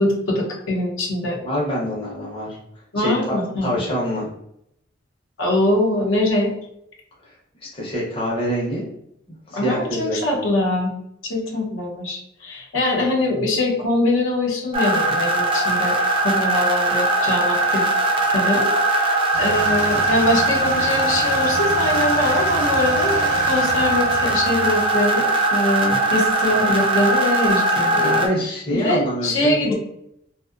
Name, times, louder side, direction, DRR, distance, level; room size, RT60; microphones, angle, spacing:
voice 1, 0.0-1.4 2.9-3.7 5.4-6.5 9.5-10.9 11.2-16.0 16.2-17.9 18.3-18.7 19.0-29.7, left 1 dB, 80° left, -1 dB, 0.7 m, -23 dB
voice 2, 1.4-2.6 3.0-4.3 7.6-8.8 9.5-10.2 28.0-29.7, equal, 25° left, -5 dB, 0.6 m, -25 dB
sound 1, 14.7-28.3, right 2 dB, 25° right, 0.3 m, -20 dB
sound 2, 19.3-25.0, right 2 dB, 85° right, 0.6 m, -32 dB
2.5 x 2.0 x 2.4 m, 0.77 s
head